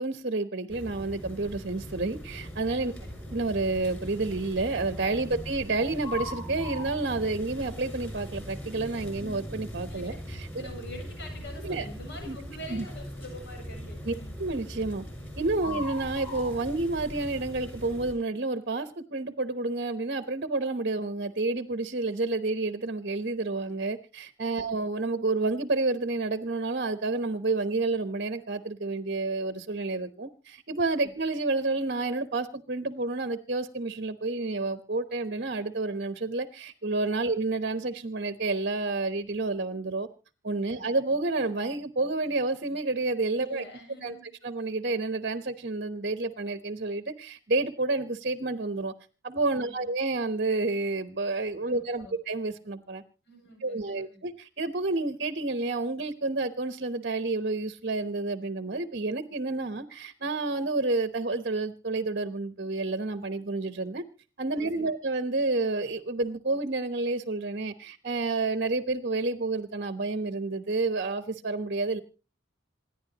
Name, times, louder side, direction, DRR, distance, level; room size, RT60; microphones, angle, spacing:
voice 1, 0.0-2.9 3.3-10.5 11.6-11.9 12.2-12.4 12.7-12.8 14.0-15.0 15.4-40.1 40.4-43.6 44.0-44.1 44.4-48.9 49.2-53.0 53.6-64.1 64.4-72.0, right 3 dB, 45° right, 11 dB, 1.0 m, -30 dB
sound 1, 0.7-18.1, left 1 dB, 10° left, 6.6 m, -40 dB
voice 2, 2.8-3.1 9.9-10.2 10.5-14.4 15.6-15.8 24.5-24.7 31.0-31.1 37.2-37.4 40.7-40.9 43.4-44.3 49.6-49.9 51.7-52.1 53.3-54.2 64.5-64.9, left 1 dB, 55° left, 4 dB, 7.4 m, -46 dB
27.5 x 11.0 x 3.0 m, 0.35 s
head